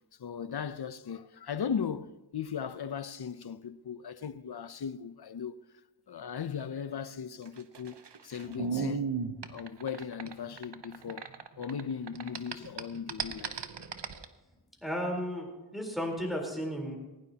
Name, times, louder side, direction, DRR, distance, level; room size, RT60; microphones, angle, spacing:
voice 1, 0.2-5.6 6.1-8.0 8.2-9.1 9.5-11.3 11.6-13.6, left 7 dB, 65° left, 0.7 m, -37 dB
sound 1, 7.5-11.8 12.1-14.2, right 5 dB, 75° right, 0.9 m, -36 dB
voice 2, 14.8-17.0, equal, ahead, 3.9 m, -34 dB
19.0 x 17.0 x 2.9 m
wide cardioid pair, 65°, 42 cm